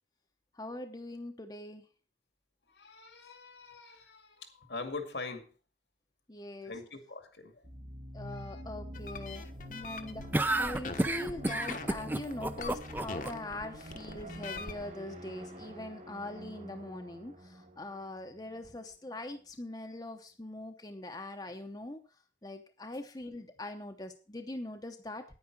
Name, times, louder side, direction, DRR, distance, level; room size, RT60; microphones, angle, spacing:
voice 1, 0.6-1.8 6.3-6.7 8.1-22.0 22.4-25.2, left 1 dB, 20° left, 0.9 m, -42 dB
voice 2, 2.7-5.5 6.6-7.6 8.2-8.6 9.0-9.4, left 3 dB, 75° left, 2.2 m, -44 dB
sound 1, 7.6-19.2, equal, 40° right, 1.8 m, -47 dB
sound 2, 8.9-14.8, left 4 dB, 45° left, 1.2 m, -43 dB
sound 3, 10.3-13.3, right 1 dB, 10° right, 0.6 m, -30 dB
10.0 x 9.6 x 6.0 m
head